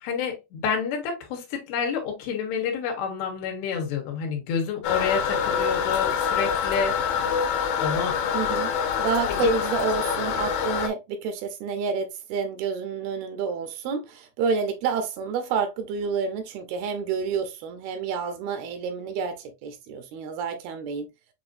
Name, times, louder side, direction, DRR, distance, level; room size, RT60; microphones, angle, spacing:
voice 1, 0.0-7.3 7.8-8.2 9.3-9.5, left 6 dB, 85° left, 3.2 m, -29 dB
Toilet flush, 4.8-10.9, left 7 dB, 70° left, 2.2 m, -26 dB
voice 2, 8.3-8.7 9.0-21.1, right 6 dB, 80° right, 2.5 m, -29 dB
7.7 x 2.6 x 2.5 m
omnidirectional pair, 4.6 m